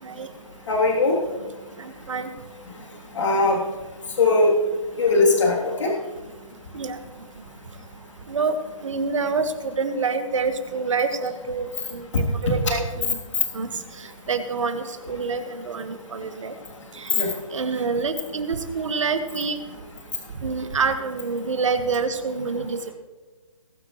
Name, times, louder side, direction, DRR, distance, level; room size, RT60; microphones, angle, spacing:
voice 1, 0.7-1.2 3.1-3.6 4.2-4.5 5.0-5.9 12.1-12.5 17.1-17.3, left 3 dB, 60° left, -2 dB, 3.2 m, -20 dB
voice 2, 1.8-2.3 6.7-7.0 8.3-8.6 8.8-13.2 13.5-13.7 14.0-16.5 16.9-17.1 17.5-19.6 20.4-22.9, right 4 dB, 65° right, 8 dB, 1.6 m, -27 dB
20.0 x 8.9 x 3.2 m, 1.3 s
hypercardioid pair, 160°, 17 cm